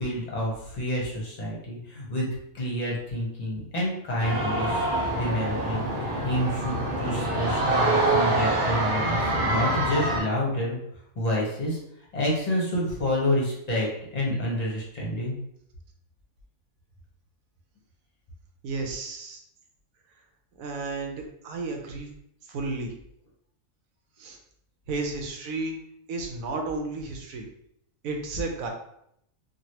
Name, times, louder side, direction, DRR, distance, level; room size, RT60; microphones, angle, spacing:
voice 1, 0.0-2.3 2.5-5.9 6.2-10.8 11.2-11.8 12.1-13.9 14.1-15.3, left 1 dB, 35° left, -4 dB, 0.9 m, -28 dB
sound 1, 4.2-10.2, right 2 dB, 40° right, 0.9 m, -25 dB
voice 2, 18.6-19.4 20.6-22.1 22.5-22.9 24.2-24.4 24.9-25.8 26.1-27.5 28.0-28.7, right 3 dB, 80° right, 2 dB, 1.1 m, -32 dB
3.2 x 2.5 x 2.8 m, 0.74 s
omnidirectional pair, 1.4 m